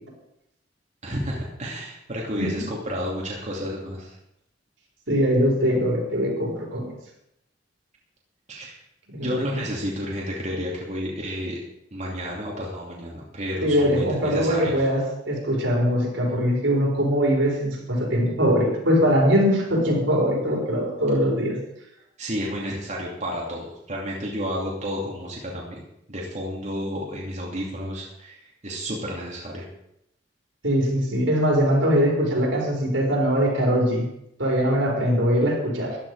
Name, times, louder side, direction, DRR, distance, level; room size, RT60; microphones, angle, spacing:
voice 1, 1.0-4.1 8.5-8.7 9.1-11.6 11.9-14.8 22.2-25.8 26.1-29.6, equal, 40° right, -3 dB, 2.8 m, -31 dB
voice 2, 5.1-6.9 9.1-9.4 13.6-21.6 30.6-34.0 34.4-36.0, equal, 80° right, -2 dB, 4.9 m, -22 dB
14.5 x 11.5 x 4.9 m, 0.80 s
head